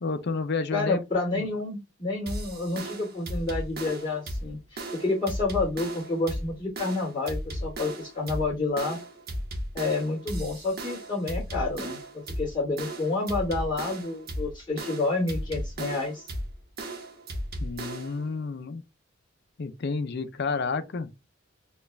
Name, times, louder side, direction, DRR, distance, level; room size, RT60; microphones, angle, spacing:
voice 1, 0.0-1.0 1.3-1.4 17.6-18.8 19.6-21.1, left 4 dB, 55° left, 0.5 m, -30 dB
voice 2, 0.7-9.0 9.7-16.3, left 3 dB, 20° left, 2.1 m, -29 dB
sound 1, 2.3-18.2, right 1 dB, 50° right, 0.9 m, -35 dB
4.4 x 2.3 x 3.3 m
head